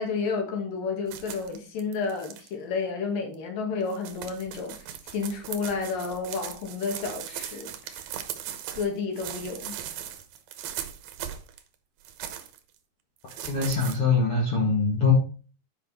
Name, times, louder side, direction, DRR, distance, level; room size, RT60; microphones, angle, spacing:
voice 1, 0.0-8.0 8.8-9.8, left 4 dB, 70° left, 3 dB, 3.6 m, -31 dB
sound 1, 1.1-2.5 3.3-3.4 3.8-8.9 9.2-11.6 12.0-12.6 13.3-14.0, right 10 dB, 85° right, 3.0 m, -38 dB
voice 2, 13.4-15.1, left 4 dB, 45° left, -2 dB, 2.2 m, -23 dB
10.5 x 5.3 x 4.2 m, 0.37 s
omnidirectional pair, 4.2 m